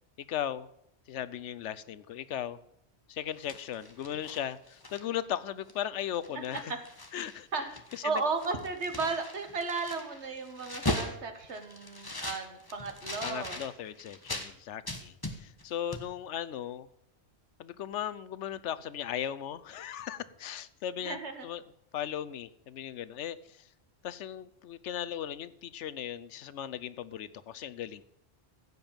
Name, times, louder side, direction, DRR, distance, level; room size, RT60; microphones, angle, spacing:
voice 1, 0.3-0.7 1.1-2.6 3.1-6.7 7.1-7.5 7.9-8.2 13.2-16.9 17.6-21.2 21.4-21.6 21.9-23.6 24.0-28.0, left 10 dB, 85° left, 16 dB, 1.0 m, -37 dB
sound 1, 3.3-5.3 5.7-5.8 6.1-7.4 7.7-14.5 14.9-15.7 15.9-16.1, left 1 dB, 20° left, 1.2 m, -39 dB
voice 2, 6.3-6.8 7.5-7.7 8.0-13.6 21.0-21.5, right 4 dB, 75° right, 7 dB, 1.8 m, -34 dB
15.0 x 5.4 x 8.8 m, 0.76 s
omnidirectional pair, 1.2 m